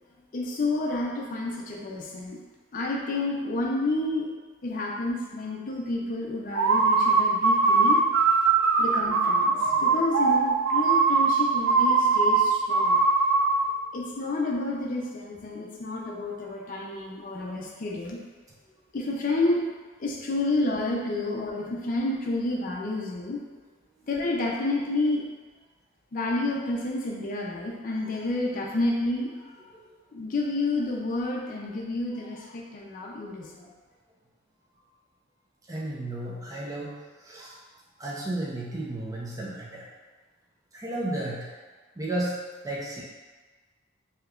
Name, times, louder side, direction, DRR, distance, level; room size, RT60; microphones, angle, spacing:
voice 1, 0.3-2.4 2.7-4.3 4.6-8.0 8.8-13.0 13.9-18.2 18.9-19.7 20.0-23.4 24.1-25.3 26.1-29.3 30.1-33.7, left 2 dB, 40° left, -2 dB, 0.5 m, -30 dB
sound 1, 6.5-13.7, right 4 dB, 90° right, 0.3 m, -21 dB
voice 2, 8.5-9.8 29.7-29.8 35.7-37.6 38.0-39.9 40.7-41.5 42.0-42.3 42.6-43.0, right 1 dB, 15° right, -5 dB, 0.5 m, -34 dB
3.4 x 2.8 x 2.4 m, 1.4 s
head